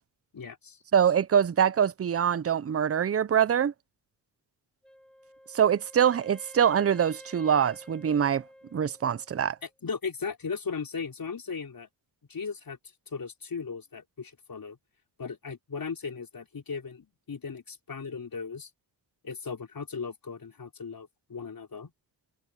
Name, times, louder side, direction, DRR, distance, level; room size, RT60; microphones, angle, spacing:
voice 1, 0.3-0.8 9.6-11.9 12.3-12.8 13.1-14.8 15.2-18.7 19.2-21.9, left 5 dB, 50° left, 4.5 m, -37 dB
voice 2, 0.9-3.7 5.5-8.4 8.7-9.6, right 8 dB, 30° right, 0.6 m, -24 dB
Wind instrument woodwind instrument, 4.8-9.7, equal, ahead, 2.8 m, -51 dB
cardioid pair, 60°, 46 cm